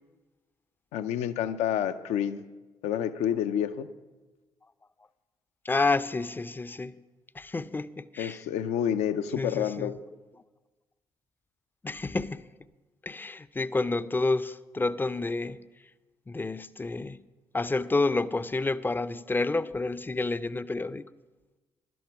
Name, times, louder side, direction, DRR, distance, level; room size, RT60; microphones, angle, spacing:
voice 1, 0.9-2.4 2.8-3.9 8.2-10.0, left 9 dB, 70° left, 0.6 m, -29 dB
voice 2, 5.6-7.0 7.3-8.4 9.4-9.9 11.8-12.5 13.0-15.6 16.3-17.2 17.5-21.0, left 3 dB, 15° left, 0.5 m, -29 dB
11.5 x 9.4 x 5.8 m
hypercardioid pair, 45°, 12 cm